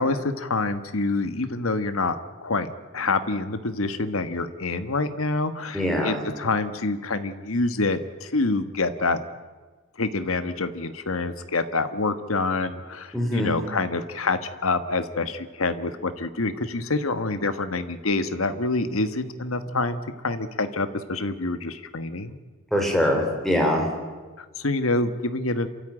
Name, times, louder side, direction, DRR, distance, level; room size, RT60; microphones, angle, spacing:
voice 1, 0.0-2.2 2.4-2.7 2.9-9.2 10.0-22.4 24.4-25.7, left 3 dB, 75° left, 10 dB, 1.4 m, -26 dB
voice 2, 5.7-6.2 13.1-13.6 22.7-23.9, left 1 dB, ahead, 0 dB, 4.8 m, -23 dB
27.0 x 13.5 x 9.0 m, 1.3 s
head